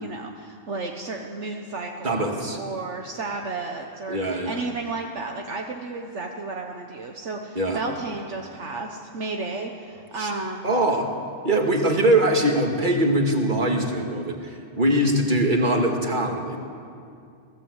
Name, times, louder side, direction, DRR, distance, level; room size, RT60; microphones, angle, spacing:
voice 1, 0.0-10.7, right 3 dB, 65° right, 2 dB, 1.5 m, -33 dB
voice 2, 2.0-2.6 4.1-4.6 7.6-7.8 10.2-10.3 10.6-11.1 11.4-16.6, right 1 dB, 40° right, 2 dB, 2.3 m, -22 dB
22.0 x 16.5 x 8.1 m, 2.4 s
omnidirectional pair, 1.3 m